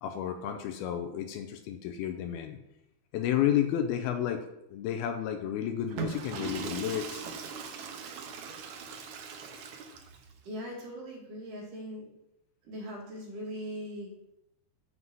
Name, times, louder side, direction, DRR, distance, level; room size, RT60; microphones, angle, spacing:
voice 1, 0.0-2.6 3.1-4.4 4.7-7.2, left 10 dB, 80° left, 6 dB, 2.4 m, -31 dB
Water / Toilet flush, 5.8-10.3, right 5 dB, 85° right, 1.5 m, -39 dB
voice 2, 10.4-12.0 12.6-14.1, equal, 55° right, -2 dB, 3.5 m, -40 dB
8.1 x 5.5 x 7.7 m, 0.85 s
omnidirectional pair, 4.8 m